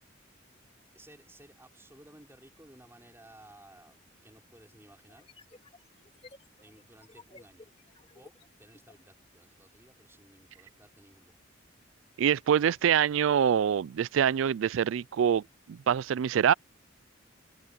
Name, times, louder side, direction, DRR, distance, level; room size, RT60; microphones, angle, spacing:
voice 1, 0.9-5.3 6.6-7.7 8.1-11.4, right 1 dB, 10° right, 5.0 m, -56 dB
sound 1, 5.1-9.1, left 3 dB, 30° left, 2.9 m, -56 dB
voice 2, 12.2-16.5, right 8 dB, 75° right, 0.3 m, -25 dB
head